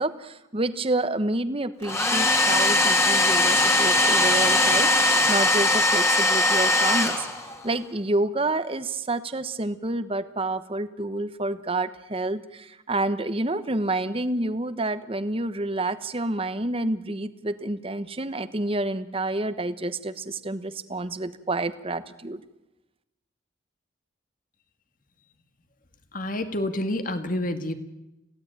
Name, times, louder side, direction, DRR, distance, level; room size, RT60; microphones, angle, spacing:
voice 1, 0.0-7.3 7.6-22.4, right 2 dB, 30° right, 12 dB, 1.1 m, -29 dB
Domestic sounds home sounds, 1.8-7.7, left 1 dB, 15° left, 2.5 m, -20 dB
voice 2, 26.1-27.7, left 1 dB, 45° left, 8 dB, 2.1 m, -28 dB
27.0 x 17.0 x 9.0 m, 0.95 s
head